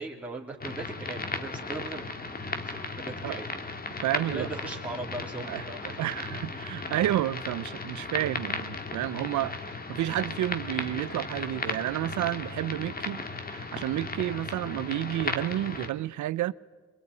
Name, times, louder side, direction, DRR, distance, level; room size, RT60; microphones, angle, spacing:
voice 1, 0.0-3.6 4.1-6.3 6.5-6.6, right 3 dB, 5° right, 3.5 m, -39 dB
sound 1, 0.6-15.9, left 3 dB, 30° left, 2.2 m, -36 dB
voice 2, 4.0-4.5 5.5-5.6 6.0-13.2 13.5-16.5, right 14 dB, 75° right, 0.7 m, -30 dB
23.0 x 22.5 x 9.6 m
cardioid pair, 90°, 30 cm